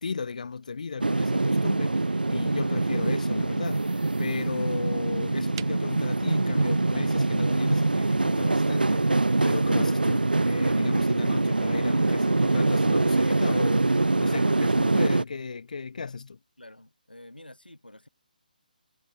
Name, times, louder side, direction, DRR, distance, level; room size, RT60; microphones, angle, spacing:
voice 1, 0.0-16.4, left 5 dB, 55° left, 3.7 m, -35 dB
sound 1, 1.0-15.2, right 2 dB, 80° right, 0.5 m, -24 dB
sound 2, 5.5-14.7, right 12 dB, 30° right, 3.3 m, -52 dB
voice 2, 12.0-12.3 16.6-18.1, left 1 dB, 85° left, 6.7 m, -48 dB
figure-of-eight pair, 140°, 5 cm